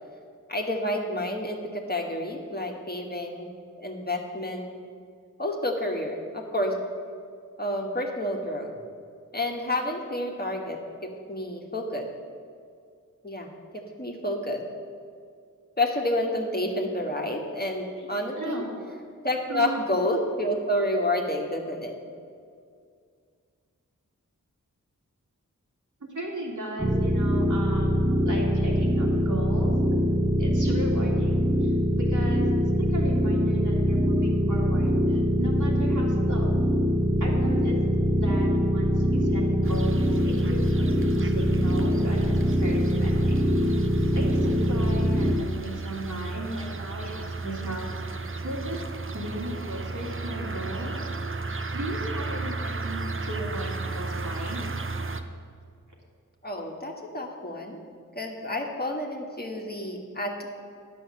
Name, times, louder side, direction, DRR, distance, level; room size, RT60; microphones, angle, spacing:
voice 1, 0.5-3.5 3.8-4.7 5.4-6.8 7.6-8.7 9.3-12.1 13.2-13.5 13.7-14.6 15.8-18.6 19.2-22.0 56.4-57.8 58.1-60.5, left 1 dB, 30° left, 0 dB, 1.4 m, -29 dB
voice 2, 18.3-18.7 19.5-20.0 26.0-29.7 30.4-32.5 32.8-36.6 37.2-37.8 38.1-43.7 44.1-48.8 49.1-51.0 51.7-53.0 53.3-54.6, right 1 dB, 65° right, -3 dB, 2.6 m, -36 dB
sound 1, 26.8-45.4, equal, 10° right, 1.0 m, -23 dB
sound 2, 39.6-55.2, right 3 dB, 40° right, 0.7 m, -34 dB
10.0 x 6.4 x 7.4 m, 2.2 s
wide cardioid pair, 45°, 33 cm